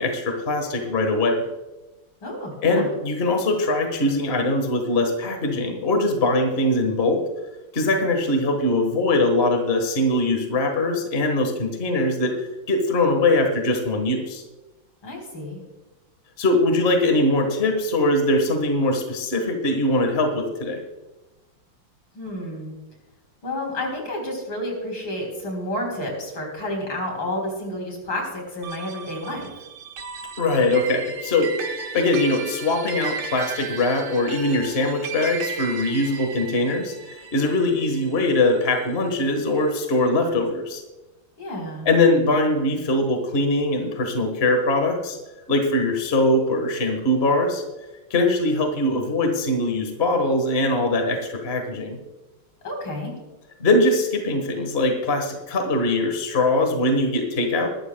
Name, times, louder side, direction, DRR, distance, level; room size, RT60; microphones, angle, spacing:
voice 1, 0.0-1.4 2.6-7.2 7.7-14.4 16.4-20.8 30.4-31.5 31.9-40.8 41.8-45.2 45.5-47.6 48.1-52.0 53.6-57.7, left 2 dB, 30° left, 4 dB, 1.5 m, -22 dB
voice 2, 2.2-2.9 15.0-15.6 22.1-22.8 23.4-29.5 41.4-41.9 52.6-53.1, left 1 dB, 65° left, 1 dB, 4.8 m, -30 dB
sound 1, 28.6-39.2, right 6 dB, 90° right, 2.1 m, -35 dB
20.5 x 13.0 x 2.3 m, 1.1 s
omnidirectional pair, 2.3 m